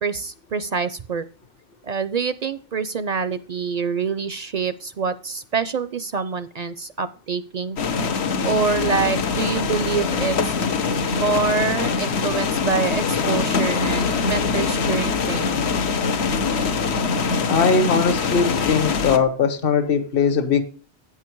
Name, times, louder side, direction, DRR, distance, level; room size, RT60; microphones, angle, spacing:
voice 1, 0.0-1.3 1.8-7.8 8.4-10.5 11.0-15.7, right 5 dB, 50° right, 0.5 m, -26 dB
sound 1, 7.8-19.2, left 5 dB, 80° left, 1.2 m, -23 dB
voice 2, 17.5-20.6, left 5 dB, 60° left, 1.3 m, -20 dB
9.0 x 7.4 x 4.5 m
omnidirectional pair, 1.1 m